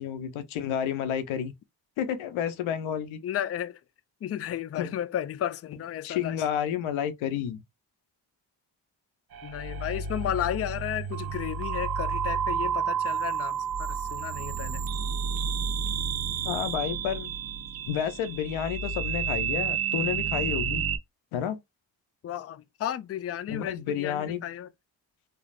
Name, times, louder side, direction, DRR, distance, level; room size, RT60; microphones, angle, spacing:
voice 1, 0.0-1.5 2.0-3.2 4.7-4.9 6.0-7.6 16.4-17.4 17.9-20.8 21.3-21.6 23.5-24.4, left 9 dB, 90° left, 0.5 m, -30 dB
voice 2, 3.2-3.8 4.2-6.4 9.4-14.9 22.2-24.7, left 11 dB, 35° left, 0.4 m, -33 dB
sound 1, 9.3-21.0, right 6 dB, 50° right, 0.6 m, -30 dB
3.2 x 2.4 x 2.4 m
supercardioid pair, 45°, 47 cm